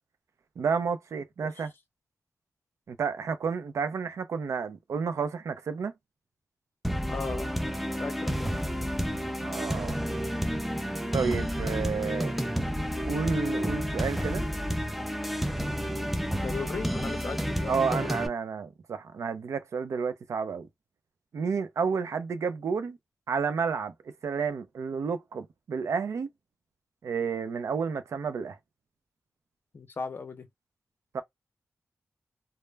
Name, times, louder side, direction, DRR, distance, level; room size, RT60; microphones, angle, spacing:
voice 1, 0.6-1.7 2.9-5.9 9.4-10.0 11.1-12.3 13.1-14.4 17.7-20.7 21.3-23.0 23.3-23.9 24.2-26.3 27.0-28.6 31.1-31.2, right 5 dB, 75° right, 0.5 m, -31 dB
sound 1, 6.8-18.3, equal, ahead, 0.3 m, -30 dB
voice 2, 7.1-7.6 8.0-8.6 16.4-18.1 29.7-30.5, left 5 dB, 45° left, 0.6 m, -37 dB
2.1 x 2.0 x 3.2 m
wide cardioid pair, 145°, 5 cm